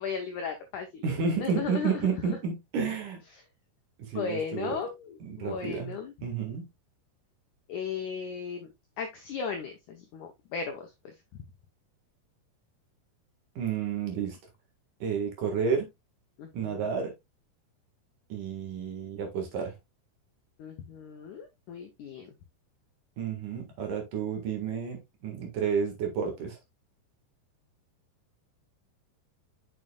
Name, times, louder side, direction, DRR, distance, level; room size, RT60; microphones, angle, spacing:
voice 1, 0.0-2.4 4.0-6.1 7.7-8.7 9.0-11.1 16.4-16.8 20.6-22.3, left 6 dB, 75° left, 1.8 m, -36 dB
voice 2, 1.0-3.2 4.0-4.8 5.2-6.6 13.6-14.4 15.0-15.9 16.5-17.1 18.3-19.7 23.2-26.6, right 6 dB, 60° right, 2.9 m, -31 dB
7.5 x 6.6 x 2.3 m
omnidirectional pair, 4.7 m